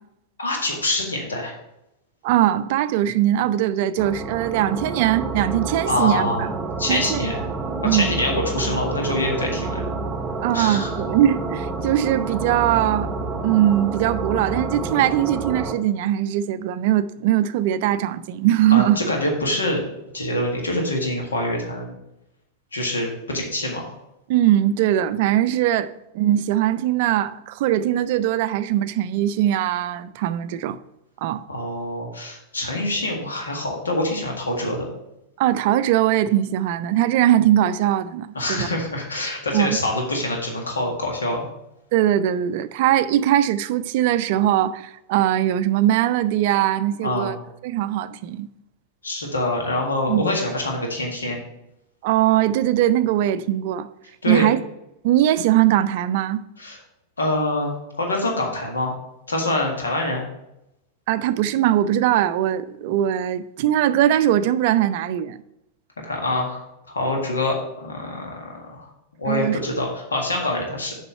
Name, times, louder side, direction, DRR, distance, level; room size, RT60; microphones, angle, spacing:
voice 1, 0.4-1.5 5.9-6.5 6.8-7.4 7.9-9.8 10.5-10.9 18.7-19.8 20.1-21.9 22.7-23.9 31.5-34.9 38.3-41.4 47.0-47.3 49.0-51.4 54.2-54.4 56.6-56.8 57.2-58.9 59.3-60.2 66.0-68.9 69.2-70.9, left 1 dB, 75° left, 1.7 m, -25 dB
voice 2, 2.2-6.5 6.9-7.2 7.8-8.2 10.4-13.1 13.4-19.0 24.3-30.8 31.2-31.4 35.4-38.7 39.5-39.8 41.9-47.4 47.6-48.5 50.1-50.2 52.0-53.9 54.3-54.6 55.0-56.4 61.1-65.4 69.3-69.6, right 12 dB, 50° right, 0.4 m, -21 dB
sound 1, 4.0-15.8, right 3 dB, 15° right, 0.9 m, -29 dB
6.9 x 5.3 x 5.4 m
figure-of-eight pair, 90°, 0 cm